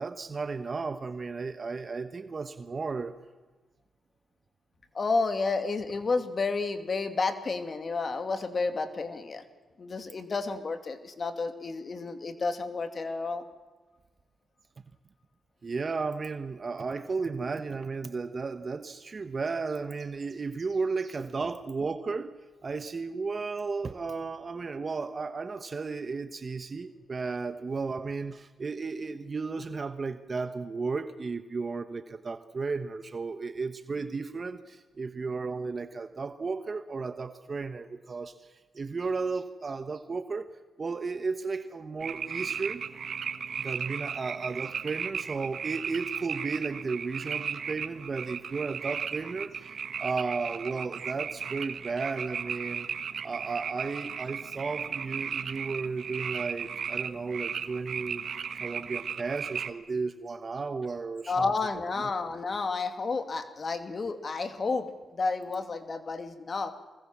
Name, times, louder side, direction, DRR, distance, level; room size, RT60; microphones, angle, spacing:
voice 1, 0.0-3.1 15.6-40.4 40.8-42.8 43.6-52.9 53.2-58.3 58.6-61.5, right 4 dB, 45° right, 10 dB, 1.3 m, -34 dB
voice 2, 4.9-9.4 9.8-13.4 61.3-66.7, left 4 dB, 45° left, 8 dB, 2.5 m, -31 dB
sound 1, 42.0-59.7, right 7 dB, 65° right, 1.3 m, -36 dB
24.5 x 21.5 x 7.5 m, 1.2 s
cardioid pair, 65°, 0 cm